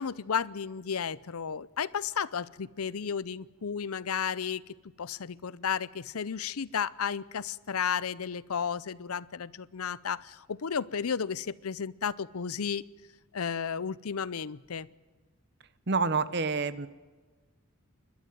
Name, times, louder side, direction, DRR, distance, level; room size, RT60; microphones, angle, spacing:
voice 1, 0.0-4.6 5.0-12.9 13.3-14.9, left 7 dB, 90° left, 19 dB, 0.6 m, -33 dB
voice 2, 15.9-16.9, right 4 dB, 50° right, 14 dB, 1.0 m, -28 dB
28.5 x 12.5 x 9.1 m, 1.3 s
head